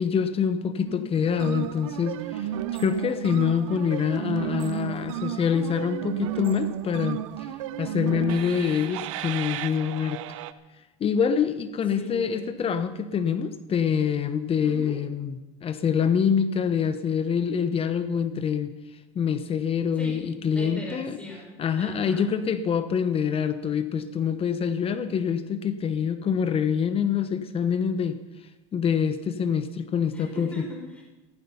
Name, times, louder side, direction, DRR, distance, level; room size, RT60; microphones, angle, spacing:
voice 1, 0.0-2.5 2.7-7.2 7.8-10.2 11.0-18.7 19.1-21.2 21.6-28.2 28.7-30.5, left 7 dB, 35° left, 11 dB, 1.0 m, -25 dB
voice 2, 0.8-1.3 11.9-12.5 14.6-15.0 19.9-22.3 30.1-31.0, left 2 dB, 10° left, -1 dB, 5.0 m, -39 dB
sound 1, 1.3-10.5, right 12 dB, 85° right, 0.8 m, -33 dB
15.5 x 13.5 x 5.7 m, 1.1 s
supercardioid pair, 100°, 16 cm